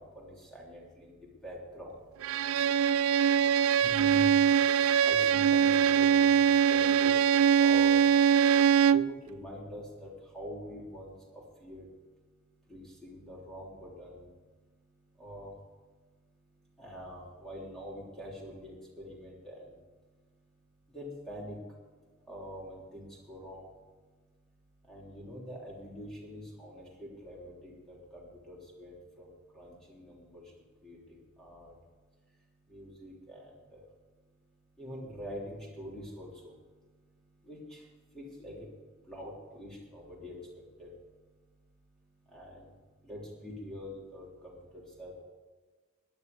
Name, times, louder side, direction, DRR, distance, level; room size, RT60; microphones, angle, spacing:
voice 1, 0.1-1.1 1.4-1.9 3.8-4.3 5.0-6.4 6.7-7.2 7.6-7.9 8.9-10.1 10.3-11.8 12.7-14.2 15.2-15.5 16.8-19.6 20.9-21.6 22.3-23.6 24.9-29.3 29.5-30.4 30.8-31.0 31.4-31.7 32.7-33.4 33.7-33.8 34.8-36.3 37.5-37.8 38.1-38.7 39.1-40.3 40.8-40.9 42.3-42.6 43.0-45.2, equal, 5° left, -4 dB, 3.3 m, -44 dB
Bowed string instrument, 2.2-9.1, right 8 dB, 70° right, 0.3 m, -23 dB
17.0 x 10.5 x 5.4 m, 1.4 s
head